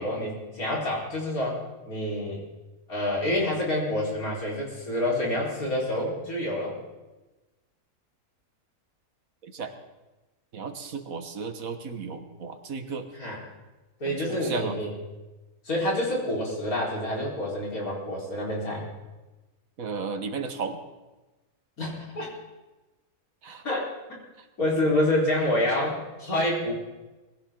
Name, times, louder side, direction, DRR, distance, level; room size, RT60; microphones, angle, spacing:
voice 1, 0.0-1.6 1.9-2.4 2.9-6.8 13.2-13.4 14.0-14.9 15.6-18.9 21.8-22.3 23.6-23.8 24.6-26.7, left 1 dB, 70° left, -4 dB, 4.8 m, -27 dB
voice 2, 9.4-9.7 10.5-13.1 14.0-14.8 19.8-20.8 23.4-23.6, right 5 dB, 65° right, 8 dB, 1.6 m, -34 dB
21.5 x 16.0 x 3.8 m, 1.1 s
omnidirectional pair, 1.6 m